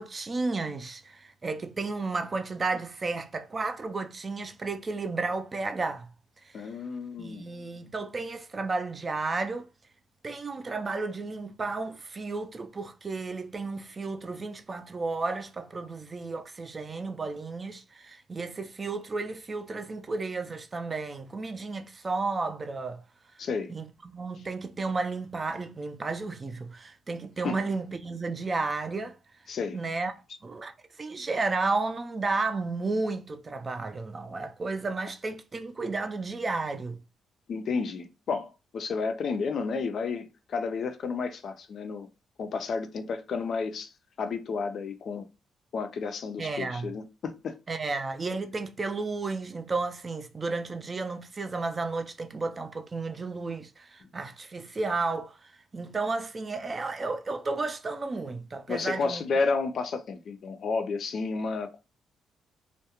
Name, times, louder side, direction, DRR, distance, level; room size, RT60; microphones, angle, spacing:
voice 1, 0.0-6.1 6.4-6.6 7.2-9.7 10.2-23.0 23.7-29.2 29.7-30.1 30.4-30.7 31.0-37.0 46.4-46.9 47.7-59.2, right 3 dB, 30° right, 0.3 m, -33 dB
voice 2, 6.5-7.4 23.4-23.7 24.3-24.4 27.4-27.6 29.5-29.8 37.5-42.1 42.4-43.9 44.2-45.3 45.7-47.6 58.7-61.8, left 4 dB, 60° left, 0.4 m, -31 dB
2.3 x 2.0 x 2.8 m
cardioid pair, 90°, 0 cm